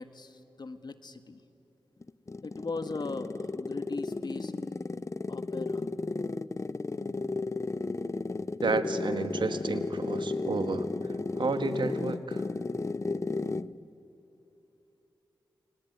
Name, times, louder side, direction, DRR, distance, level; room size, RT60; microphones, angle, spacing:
voice 1, 0.0-1.4 2.4-4.5 5.3-5.9, left 3 dB, 55° left, 10 dB, 1.6 m, -39 dB
sound 1, 2.0-13.8, left 3 dB, 35° left, 0.7 m, -33 dB
voice 2, 8.6-12.5, right 4 dB, 65° right, 9 dB, 1.6 m, -32 dB
29.5 x 20.5 x 9.4 m, 2.9 s
cardioid pair, 40°, 9 cm